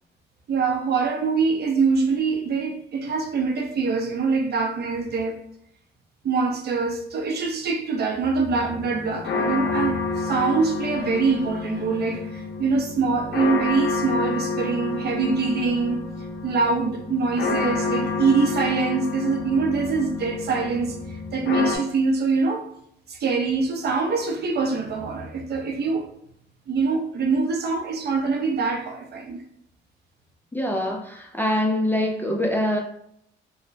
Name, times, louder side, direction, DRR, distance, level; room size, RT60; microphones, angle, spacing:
voice 1, 0.5-5.4 6.2-22.7 23.1-26.1 26.7-29.4, right 4 dB, 55° right, 0.5 m, -24 dB
sound 1, 8.5-21.8, left 3 dB, 60° left, 0.5 m, -29 dB
voice 2, 30.5-32.8, left 1 dB, 10° left, 0.4 m, -24 dB
3.0 x 2.1 x 2.6 m
cardioid pair, 90°, 20 cm